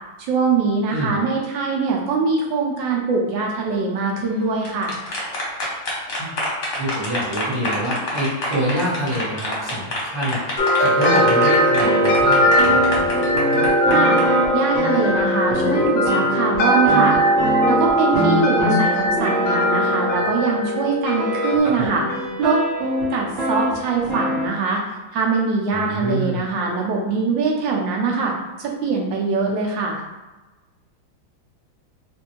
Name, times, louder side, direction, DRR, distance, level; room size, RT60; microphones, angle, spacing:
voice 1, 0.2-5.0 13.9-14.2 14.5-17.2 17.7-22.0 22.4-22.6 23.1-24.8 25.1-28.3 28.6-30.0, right 4 dB, 70° right, -1 dB, 1.2 m, -22 dB
voice 2, 0.9-1.2 6.2-6.3 6.7-12.8 21.6-21.9 25.7-26.4, equal, 20° right, -10 dB, 1.0 m, -26 dB
sound 1, 4.5-14.2, left 1 dB, 50° left, 1.0 m, -28 dB
sound 2, 10.6-21.6, equal, 80° left, 0.7 m, -19 dB
sound 3, 11.6-20.4 21.2-24.5, right 1 dB, 50° right, 0.9 m, -25 dB
3.2 x 2.6 x 3.0 m, 1.1 s
omnidirectional pair, 2.3 m